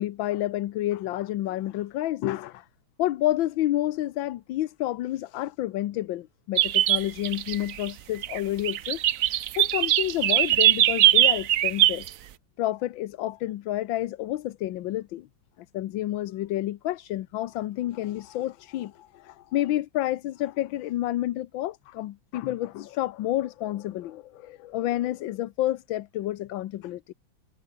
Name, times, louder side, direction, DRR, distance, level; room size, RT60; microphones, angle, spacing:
voice 1, 0.0-2.7 3.0-12.1 12.6-15.3 15.7-27.1, left 14 dB, 85° left, 1.5 m, -29 dB
sound 1, 6.6-7.9 8.2-8.4 8.6-12.1, right 12 dB, 65° right, 0.8 m, -21 dB
omnidirectional pair, 2.1 m